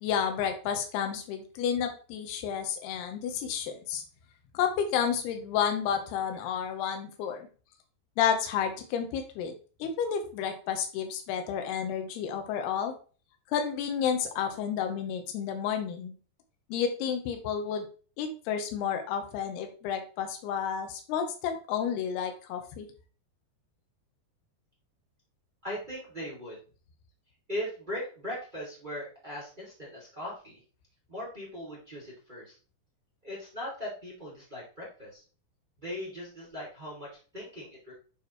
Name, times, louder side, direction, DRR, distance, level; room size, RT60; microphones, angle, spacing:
voice 1, 0.0-4.0 4.5-7.5 8.2-9.5 9.8-12.9 13.5-16.1 16.7-17.8 18.2-22.9, left 8 dB, 85° left, 5 dB, 2.9 m, -31 dB
voice 2, 25.6-26.6 27.5-30.6 31.1-32.5 33.2-35.2 35.8-38.0, equal, 20° right, -5 dB, 1.5 m, -39 dB
9.2 x 4.2 x 3.0 m, 0.38 s
omnidirectional pair, 4.7 m